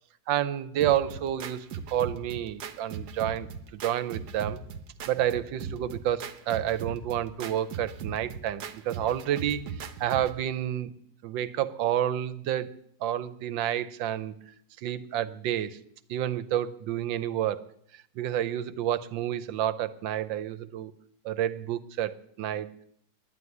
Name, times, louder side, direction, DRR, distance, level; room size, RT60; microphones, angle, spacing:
voice 1, 0.3-4.6 5.1-10.9 11.2-12.7 13.0-14.3 14.8-15.8 16.1-20.9 21.2-22.8, right 11 dB, 80° right, 14 dB, 1.5 m, -30 dB
sound 1, 0.8-10.4, right 6 dB, 65° right, 1.4 m, -39 dB
10.5 x 9.6 x 9.6 m, 0.70 s
omnidirectional pair, 2.0 m